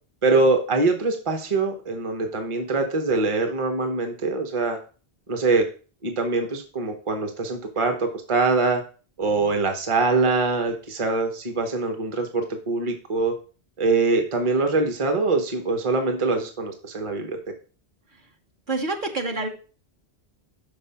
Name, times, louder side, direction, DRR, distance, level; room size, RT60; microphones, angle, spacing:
voice 1, 0.2-4.8 5.3-5.6 6.0-8.8 9.2-13.3 13.8-17.4, right 3 dB, 30° right, 4 dB, 1.0 m, -23 dB
voice 2, 18.7-19.5, right 3 dB, 50° right, 2 dB, 1.2 m, -27 dB
6.0 x 5.4 x 5.6 m, 0.38 s
omnidirectional pair, 1.1 m